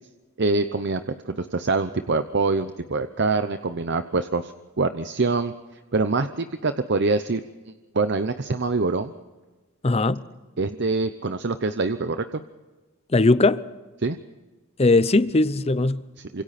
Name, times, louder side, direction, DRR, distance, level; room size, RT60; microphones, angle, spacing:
voice 1, 0.4-4.5 4.8-5.5 5.9-7.4 7.9-9.1 10.6-12.4 14.0-14.2 16.2-16.4, right 3 dB, 50° right, 0.8 m, -25 dB
voice 2, 9.8-10.2 13.1-13.6 14.8-16.0, left 2 dB, 30° left, 0.7 m, -19 dB
28.0 x 26.0 x 4.3 m
head